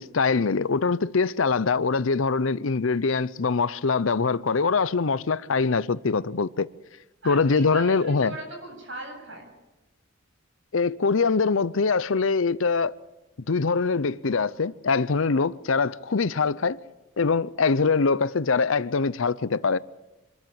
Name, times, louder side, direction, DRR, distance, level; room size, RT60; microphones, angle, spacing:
voice 1, 0.0-6.7 7.2-8.3 10.7-12.9 13.5-16.8 17.2-19.8, left 4 dB, 70° left, 0.7 m, -23 dB
voice 2, 7.2-9.5, right 2 dB, 60° right, 7.7 m, -38 dB
25.5 x 14.0 x 8.9 m
head